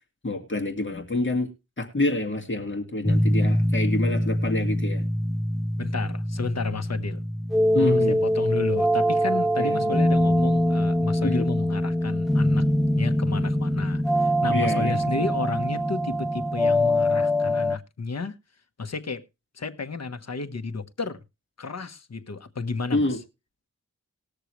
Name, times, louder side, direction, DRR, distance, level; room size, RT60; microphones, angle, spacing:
voice 1, 0.2-1.5 1.8-5.1 7.7-8.2 9.6-10.0 11.2-11.5 14.5-15.3 22.9-23.2, left 2 dB, 40° left, 2.1 m, -27 dB
sound 1, 3.0-17.8, equal, ahead, 0.7 m, -23 dB
voice 2, 5.8-7.2 7.8-12.6 13.0-18.4 18.8-19.2 19.5-21.2 21.6-23.1, left 4 dB, 55° left, 1.2 m, -32 dB
20.0 x 6.6 x 3.2 m
wide cardioid pair, 60°, 31 cm